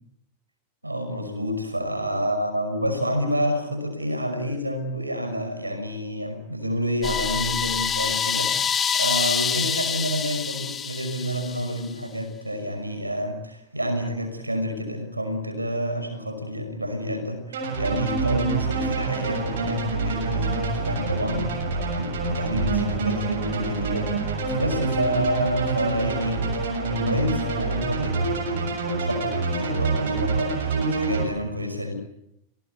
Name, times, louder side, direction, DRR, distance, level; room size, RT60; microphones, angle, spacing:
voice 1, 0.8-28.7 29.0-31.9, equal, 85° right, 7 dB, 5.7 m, -29 dB
sound 1, 7.0-11.9, left 7 dB, 20° left, 1.9 m, -26 dB
sound 2, 17.5-31.2, right 4 dB, 60° right, 7.1 m, -26 dB
28.0 x 18.5 x 8.2 m, 0.82 s
figure-of-eight pair, 90°, 0 cm